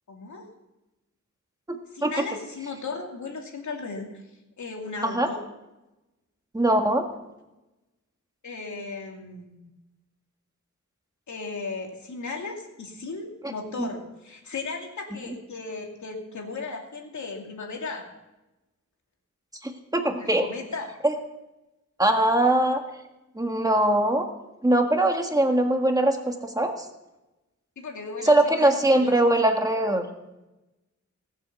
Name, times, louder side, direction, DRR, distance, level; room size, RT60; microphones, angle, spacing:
voice 1, 0.1-0.5 1.9-4.2 4.6-5.5 8.4-9.7 11.3-18.1 20.2-21.0 27.8-29.4, left 3 dB, 75° left, 1 dB, 2.6 m, -36 dB
voice 2, 1.7-2.1 5.0-5.3 6.5-7.0 13.8-13.9 19.6-20.4 21.0-21.1 22.0-22.8 23.3-24.3 24.6-26.7 28.2-30.0, right 1 dB, 10° right, 4 dB, 1.6 m, -22 dB
18.0 x 7.7 x 6.9 m, 1.0 s
wide cardioid pair, 140°, 30 cm